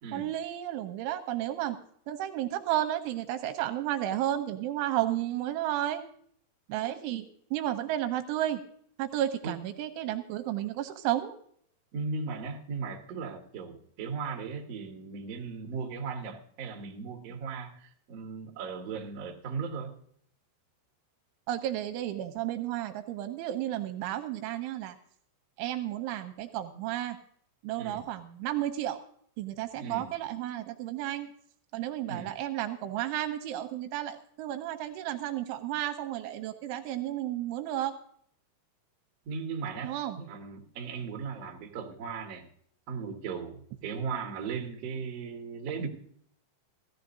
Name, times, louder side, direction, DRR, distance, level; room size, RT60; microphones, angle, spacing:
voice 1, 0.1-1.8 2.1-6.0 6.7-8.6 9.0-11.4 21.5-25.0 25.6-27.2 27.6-29.0 29.4-31.3 31.7-38.0 39.8-40.2, right 13 dB, 80° right, 8 dB, 3.0 m, -32 dB
voice 2, 11.9-20.0 27.8-28.0 29.8-30.1 32.1-32.3 39.2-42.4 42.9-45.9, right 5 dB, 65° right, 0 dB, 1.6 m, -37 dB
16.5 x 13.5 x 2.6 m, 0.62 s
omnidirectional pair, 5.9 m